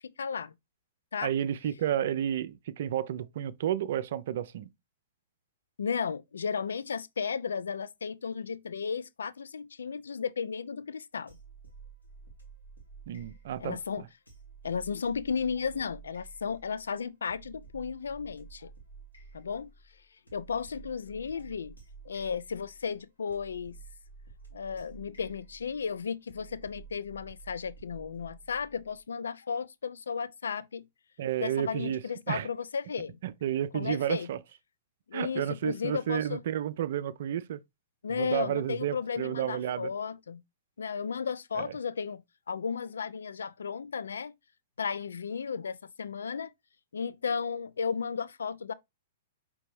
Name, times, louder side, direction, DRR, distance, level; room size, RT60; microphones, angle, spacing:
voice 1, 0.2-0.5 1.1-1.3 5.8-11.4 13.6-14.0 14.6-18.7 19.3-19.7 20.3-21.8 22.1-23.8 24.5-30.8 31.4-33.2 33.7-34.3 35.1-36.4 38.0-40.4 40.8-42.2 42.5-44.3 44.8-46.5 46.9-48.7, left 6 dB, 70° left, 0.3 m, -34 dB
voice 2, 1.2-4.7 13.1-13.8 31.2-32.5 33.2-34.4 35.1-37.6 38.1-39.9 41.5-41.7, right 10 dB, 55° right, 0.3 m, -31 dB
sound 1, 11.3-29.0, right 5 dB, 90° left, 1.6 m, -52 dB
5.0 x 3.4 x 3.1 m
figure-of-eight pair, 110°, 0 cm